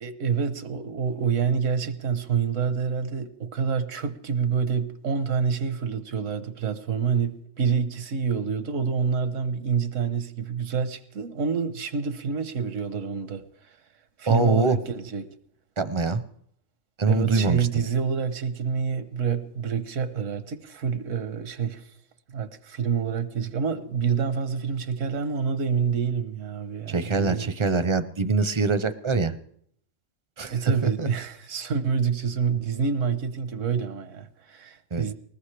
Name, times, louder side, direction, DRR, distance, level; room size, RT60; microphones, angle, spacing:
voice 1, 0.0-13.4 14.2-15.3 17.1-21.8 22.3-27.5 30.5-35.1, right 6 dB, 80° right, 1.3 m, -27 dB
voice 2, 14.3-14.8 15.8-16.2 17.0-17.7 26.9-29.3 30.4-31.1 34.9-35.0, right 4 dB, 35° right, 0.5 m, -24 dB
20.0 x 19.0 x 3.3 m
omnidirectional pair, 1.3 m